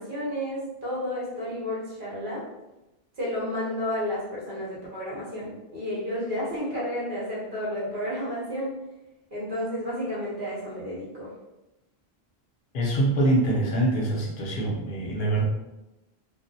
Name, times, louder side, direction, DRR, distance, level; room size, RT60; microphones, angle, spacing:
voice 1, 0.0-2.4 3.2-8.7 9.3-11.3, equal, 55° right, -8 dB, 1.1 m, -31 dB
voice 2, 12.7-15.4, right 1 dB, 60° left, -3 dB, 0.8 m, -24 dB
2.3 x 2.1 x 2.7 m, 0.98 s
omnidirectional pair, 1.1 m